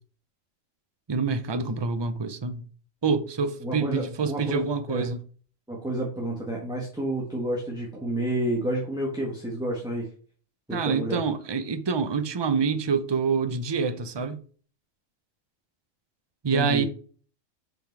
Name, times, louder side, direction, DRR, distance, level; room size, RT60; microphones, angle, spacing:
voice 1, 1.1-2.6 3.0-5.2 10.7-14.4 16.4-16.8, right 5 dB, 30° right, 0.5 m, -26 dB
voice 2, 3.6-4.6 4.9-5.1 5.7-10.1 10.7-11.2 16.5-16.9, right 1 dB, 5° right, 1.7 m, -29 dB
6.1 x 5.1 x 4.6 m
omnidirectional pair, 1.4 m